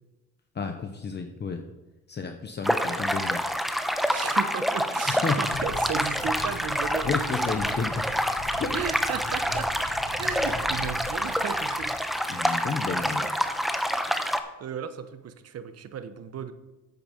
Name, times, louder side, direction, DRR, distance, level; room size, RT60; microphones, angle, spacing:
voice 1, 0.5-1.6 2.1-3.4 5.1-5.4 7.0-8.1 8.6-8.8 12.3-13.3, left 5 dB, 35° left, 5 dB, 0.9 m, -31 dB
sound 1, 2.6-14.4, equal, ahead, 0.8 m, -27 dB
voice 2, 4.1-7.1 8.7-9.7 10.2-12.0 14.6-16.5, right 8 dB, 55° right, 11 dB, 1.0 m, -35 dB
sound 2, 5.4-11.9, left 3 dB, 70° left, 1.7 m, -41 dB
9.0 x 8.2 x 5.1 m, 1.0 s
cardioid pair, 90°, 30 cm